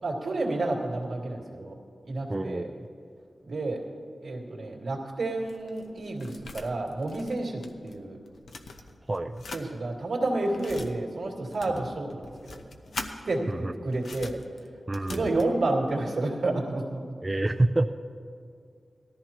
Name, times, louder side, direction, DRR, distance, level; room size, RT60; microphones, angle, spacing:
voice 1, 0.0-1.7 2.0-2.7 3.4-3.9 4.2-8.2 9.5-12.6 13.3-14.4 15.1-17.0, right 2 dB, 80° right, -2 dB, 2.4 m, -30 dB
voice 2, 2.3-2.9 9.1-9.4 13.5-13.7 14.9-15.3 17.2-17.9, right 2 dB, 20° right, 4 dB, 0.4 m, -27 dB
sound 1, 5.2-8.0 8.2-9.6 10.3-10.9 11.5-13.1 13.9-15.5, left 3 dB, 90° left, 0.9 m, -42 dB
19.0 x 14.0 x 3.0 m, 2.3 s
wide cardioid pair, 125°, 0 cm